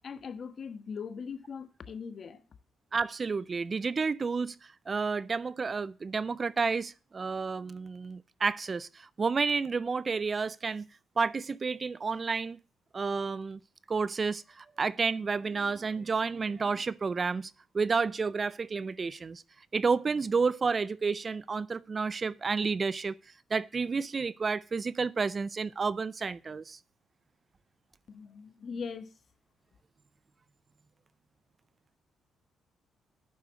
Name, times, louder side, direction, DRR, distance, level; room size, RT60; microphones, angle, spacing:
voice 1, 0.0-2.4 28.1-29.1, left 6 dB, 50° left, 1.4 m, -40 dB
voice 2, 2.9-10.9 11.2-12.6 12.9-13.6 13.9-19.4 19.7-23.1 23.5-26.8, right 4 dB, 35° right, 0.4 m, -30 dB
9.4 x 6.7 x 7.2 m
cardioid pair, 90°, 0 cm